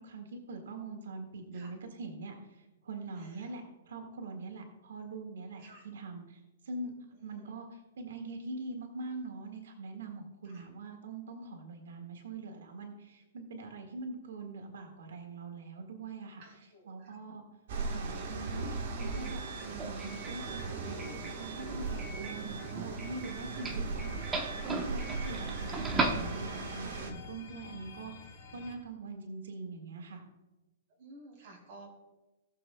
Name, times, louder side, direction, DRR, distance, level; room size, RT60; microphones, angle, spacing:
voice 1, 0.0-17.4 17.9-18.7 18.9-24.1 24.6-30.2, right 3 dB, 90° right, 3 dB, 1.7 m, -43 dB
voice 2, 3.1-3.6 5.6-5.9 7.1-7.5 10.4-10.7 16.4-17.2 31.0-31.9, right 2 dB, 35° right, -2 dB, 3.4 m, -54 dB
sound 1, 17.7-27.1, right 3 dB, 50° right, 1.4 m, -38 dB
Doorbell, 17.8-26.8, right 3 dB, 10° right, 0.8 m, -39 dB
sound 2, 20.3-28.8, left 5 dB, 40° left, 3.3 m, -52 dB
19.0 x 6.9 x 2.3 m, 1.1 s
hypercardioid pair, 175°, 0 cm